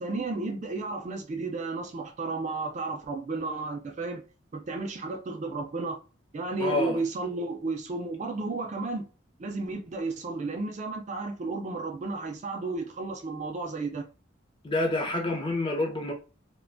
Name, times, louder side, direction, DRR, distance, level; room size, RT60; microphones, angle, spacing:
voice 1, 0.0-4.2 4.5-6.0 6.3-9.0 9.4-14.1, right 3 dB, 35° right, 0.3 m, -33 dB
voice 2, 6.6-7.0 14.6-16.1, left 2 dB, 25° left, 0.5 m, -28 dB
2.4 x 2.2 x 2.5 m
head